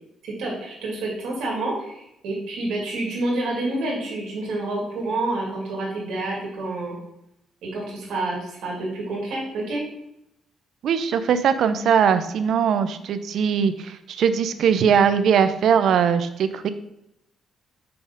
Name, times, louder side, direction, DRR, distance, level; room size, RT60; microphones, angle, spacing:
voice 1, 0.2-7.0 7.6-9.8, right 2 dB, 85° right, -3 dB, 2.1 m, -28 dB
voice 2, 10.8-16.7, right 7 dB, 65° right, 11 dB, 0.5 m, -20 dB
5.7 x 4.2 x 5.2 m, 0.82 s
cardioid pair, 125°, 0 cm